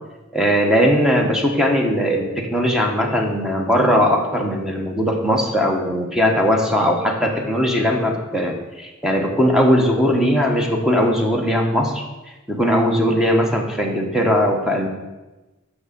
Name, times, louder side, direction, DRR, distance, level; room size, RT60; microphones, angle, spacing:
voice 1, 0.3-12.0 12.5-14.9, equal, 5° right, 1 dB, 1.0 m, -19 dB
6.2 x 6.1 x 6.8 m, 1.1 s
head